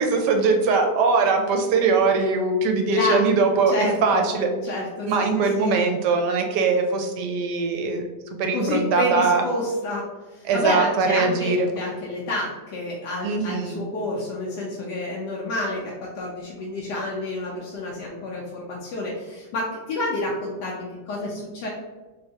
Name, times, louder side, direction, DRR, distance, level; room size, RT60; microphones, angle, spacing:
voice 1, 0.0-4.5 5.1-8.0 8.4-9.4 10.4-11.7 13.2-13.8, right 4 dB, 80° right, 4 dB, 1.2 m, -21 dB
voice 2, 2.9-3.2 3.7-4.2 4.6-5.1 5.6-5.7 8.5-10.1 10.3-21.7, left 2 dB, 80° left, -4 dB, 1.2 m, -29 dB
3.5 x 3.2 x 2.7 m, 1.2 s
omnidirectional pair, 1.8 m